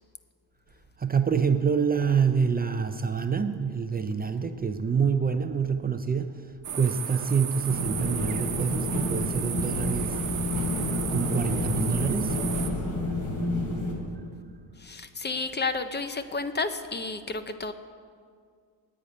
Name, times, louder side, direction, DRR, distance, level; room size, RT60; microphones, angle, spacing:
voice 1, 1.0-6.4 6.7-10.2 11.1-12.4, right 6 dB, 25° right, 8 dB, 0.5 m, -26 dB
sound 1, 6.6-12.7, right 8 dB, 45° right, 1.0 m, -34 dB
sound 2, 7.7-13.9, left 1 dB, 55° left, 3.7 m, -29 dB
voice 2, 14.8-17.7, left 3 dB, 25° left, 10 dB, 0.5 m, -31 dB
10.0 x 8.6 x 9.4 m, 2.1 s
cardioid pair, 130°, 41 cm